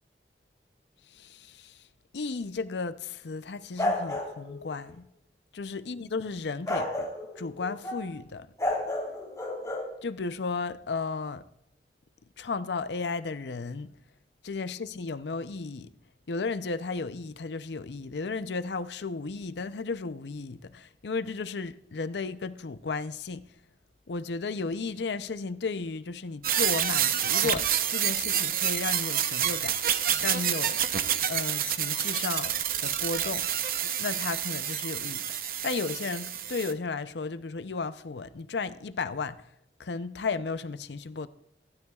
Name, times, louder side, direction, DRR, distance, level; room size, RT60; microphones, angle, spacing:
voice 1, 1.1-1.8 2.1-5.1 5.5-7.1 7.4-8.5 10.0-11.4 12.4-13.9 14.4-15.9 16.3-23.5 24.1-30.8 31.3-32.5 32.8-33.5 34.0-35.2 35.6-39.4 39.8-41.3, left 4 dB, 80° left, 0.6 m, -34 dB
sound 1, 3.8-4.9 6.7-8.1 8.6-9.8, left 1 dB, 20° left, 3.7 m, -31 dB
sound 2, 26.4-36.7, right 10 dB, 55° right, 0.7 m, -28 dB
25.5 x 12.5 x 2.4 m
head